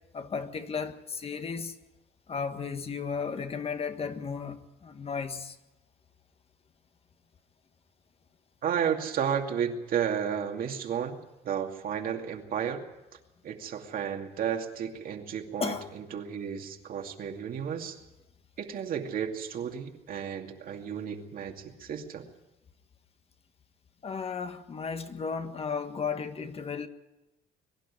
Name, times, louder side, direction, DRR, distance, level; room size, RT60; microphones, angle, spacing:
voice 1, 0.1-1.8 2.3-5.6 15.6-15.9 24.0-26.9, left 5 dB, 35° left, 1.6 m, -34 dB
voice 2, 8.6-11.2 11.4-12.8 13.4-18.0 18.6-22.3, right 8 dB, 60° right, 2.5 m, -32 dB
23.0 x 11.5 x 10.0 m
cardioid pair, 110°, 17 cm